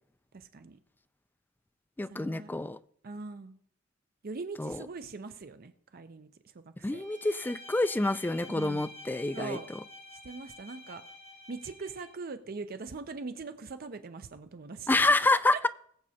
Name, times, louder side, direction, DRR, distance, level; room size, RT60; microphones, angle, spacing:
voice 1, 0.3-0.8 2.1-2.5 3.0-3.6 4.2-6.3 6.5-6.6 6.9-7.0 8.5-8.9 9.3-9.7 10.2-11.0 11.5-14.9 15.3-15.4, right 4 dB, 45° right, 10 dB, 0.6 m, -41 dB
voice 2, 2.0-2.8 4.6-4.8 6.8-9.8 14.9-15.7, left 2 dB, 10° left, 12 dB, 0.3 m, -28 dB
Bowed string instrument, 6.9-12.2, left 1 dB, 30° left, 1.4 m, -49 dB
22.0 x 7.5 x 2.8 m, 0.67 s
head